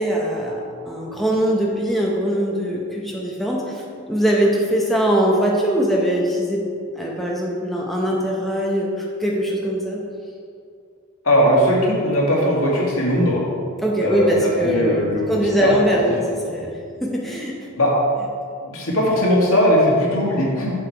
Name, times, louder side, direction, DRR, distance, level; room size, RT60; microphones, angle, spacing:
voice 1, 0.0-6.6 7.0-10.0 13.8-16.2 16.5-16.7 17.0-17.7, equal, ahead, -3 dB, 0.8 m, -21 dB
voice 2, 11.2-13.4 14.0-15.7 17.7-17.9 18.6-20.7, equal, 80° left, -4 dB, 2.1 m, -19 dB
7.6 x 7.1 x 4.6 m, 2.3 s
head